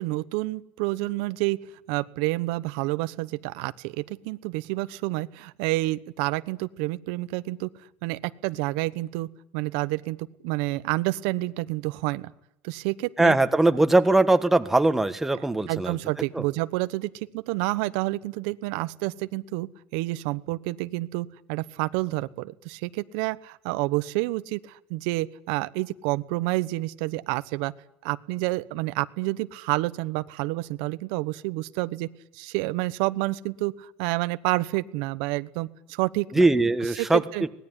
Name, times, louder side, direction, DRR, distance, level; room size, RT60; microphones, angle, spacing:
voice 1, 0.0-1.6 1.9-7.7 8.0-9.3 9.5-10.2 10.4-12.3 12.6-13.4 13.7-13.8 15.6-27.7 28.0-32.1 32.3-36.3 36.8-37.4, right 20 dB, 80° right, 14 dB, 1.0 m, -29 dB
voice 2, 13.2-16.0 16.3-16.4 36.3-37.2, right 2 dB, 5° right, 9 dB, 1.4 m, -20 dB
24.5 x 19.5 x 9.8 m, 0.81 s
cardioid pair, 140°, 4 cm